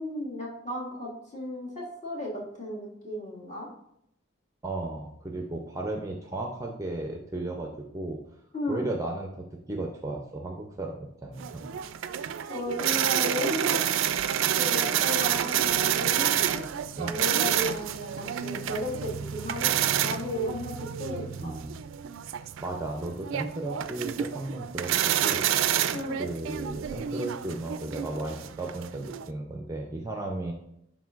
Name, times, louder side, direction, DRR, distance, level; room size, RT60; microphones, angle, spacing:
voice 1, 0.0-3.7 8.5-8.8 12.5-13.8 14.6-21.6 25.9-26.2, left 1 dB, 35° left, -5 dB, 1.8 m, -34 dB
voice 2, 4.6-8.2 8.7-11.7 17.0-17.2 21.4-21.8 22.6-25.5 26.2-30.5, right 2 dB, 15° right, 2 dB, 0.5 m, -35 dB
sound 1, 11.4-29.3, right 10 dB, 70° right, 0.3 m, -29 dB
10.5 x 3.8 x 2.4 m, 0.77 s
head